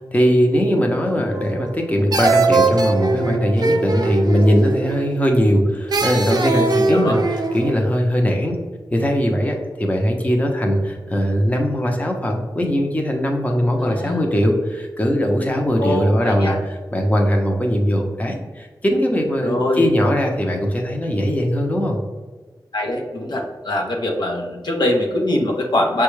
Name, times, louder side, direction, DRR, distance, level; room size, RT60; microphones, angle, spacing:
voice 1, 0.1-8.6 8.9-22.0, equal, 20° left, 1 dB, 0.7 m, -20 dB
sound 1, 1.3-1.8 2.1-5.2 5.9-7.7, right 3 dB, 65° right, 0.5 m, -21 dB
voice 2, 6.8-7.2 13.8-14.3 15.8-16.6 19.4-19.9 22.7-26.0, left 1 dB, 75° left, 1 dB, 0.7 m, -23 dB
6.0 x 2.3 x 3.1 m, 1.3 s
wide cardioid pair, 65°, 7 cm